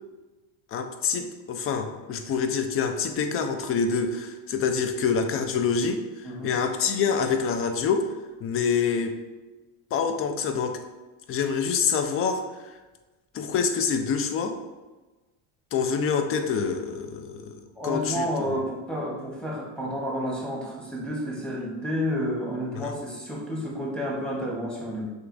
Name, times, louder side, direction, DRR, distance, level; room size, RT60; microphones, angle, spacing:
voice 1, 0.7-8.1 8.4-9.2 9.9-10.8 11.3-12.7 13.3-14.6 15.7-18.6 22.7-23.0, left 6 dB, 35° left, 6 dB, 0.5 m, -26 dB
voice 2, 6.2-6.5 17.8-25.1, equal, ahead, -3 dB, 1.0 m, -30 dB
6.4 x 2.4 x 2.6 m, 1.2 s
supercardioid pair, 110°, 38 cm